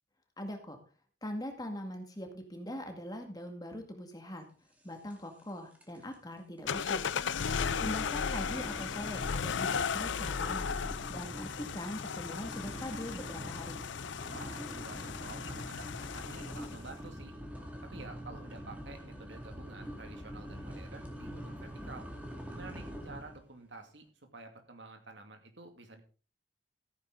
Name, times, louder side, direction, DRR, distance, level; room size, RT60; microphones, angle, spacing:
voice 1, 0.4-0.8 1.2-4.5 4.8-7.0 7.8-10.7 11.1-13.8, left 1 dB, 20° left, 4 dB, 2.1 m, -42 dB
sound 1, 5.1-5.5 5.7-6.1 6.6-6.7 7.2-23.4, equal, 10° right, 2.2 m, -45 dB
sound 2, 6.7-16.9, left 6 dB, 80° left, 0.5 m, -36 dB
voice 2, 7.3-7.6 14.3-17.3 17.8-22.1 22.5-24.1 24.3-26.0, right 3 dB, 75° right, 5 dB, 2.3 m, -50 dB
14.5 x 9.2 x 3.9 m, 0.37 s
head